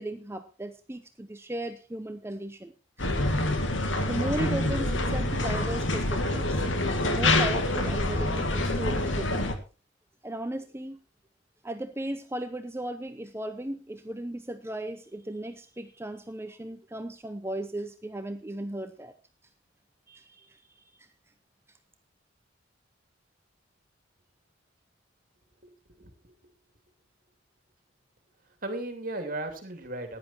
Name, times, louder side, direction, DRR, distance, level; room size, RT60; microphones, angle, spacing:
voice 1, 0.0-2.7 4.1-6.6 6.9-9.5 10.2-11.0 11.6-19.1 20.1-20.6 20.9-21.1, right 1 dB, 15° right, 9 dB, 0.7 m, -36 dB
sound 1, 3.0-9.5, left 2 dB, 80° left, 1.9 m, -26 dB
voice 2, 25.6-26.3 28.6-30.2, right 2 dB, 45° right, 7 dB, 2.8 m, -36 dB
14.5 x 10.5 x 4.4 m, 0.34 s
head